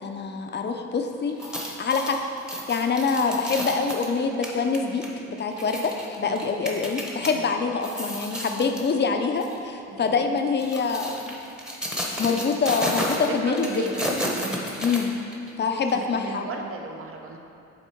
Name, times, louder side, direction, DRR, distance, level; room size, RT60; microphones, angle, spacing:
voice 1, 0.0-2.2 2.5-5.1 5.4-11.4 12.2-13.7 14.8-15.2 15.6-16.5, left 5 dB, 35° left, 5 dB, 0.6 m, -25 dB
sound 1, 1.3-7.3 7.7-8.9 9.4-9.6 10.4-15.5 15.9-16.0, equal, 5° right, 0.9 m, -32 dB
voice 2, 7.1-7.5 9.9-10.3 12.2-12.4 13.1-14.0 14.4-14.7 15.9-17.4, right 4 dB, 45° right, 2 dB, 0.8 m, -37 dB
7.9 x 3.6 x 4.5 m, 2.6 s
cardioid pair, 90°, 30 cm